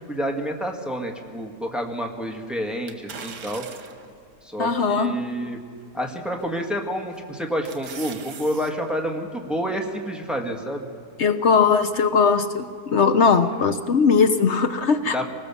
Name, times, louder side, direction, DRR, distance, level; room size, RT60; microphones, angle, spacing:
voice 1, 0.0-3.6 4.4-5.6 5.9-10.9 15.0-15.3, equal, ahead, 1 dB, 1.8 m, -29 dB
sound 1, 2.9-4.1 4.7-4.8 6.4-6.7 7.2-8.7 9.1-9.2, right 6 dB, 85° right, 2.0 m, -40 dB
voice 2, 4.6-5.2 11.2-15.2, left 5 dB, 55° left, 9 dB, 0.9 m, -19 dB
24.5 x 19.5 x 7.1 m, 2.1 s
omnidirectional pair, 1.7 m